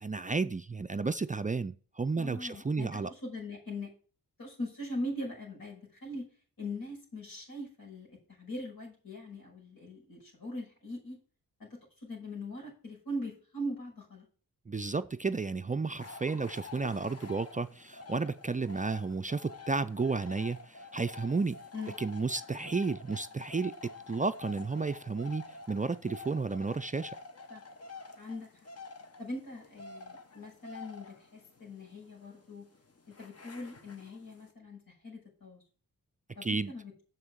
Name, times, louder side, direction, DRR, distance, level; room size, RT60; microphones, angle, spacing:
voice 1, 0.0-3.1 14.7-21.6 22.0-27.2 36.4-36.7, right 4 dB, 20° right, 0.4 m, -32 dB
voice 2, 2.2-3.9 4.4-6.3 6.6-11.2 11.6-14.3 21.7-21.9 27.5-27.6 28.2-28.5 29.2-32.7 33.1-35.6 36.4-36.9, left 1 dB, 70° left, 6.1 m, -41 dB
sound 1, 16.0-34.5, left 4 dB, 40° left, 1.2 m, -49 dB
7.1 x 6.3 x 7.3 m
cardioid pair, 80°, 36 cm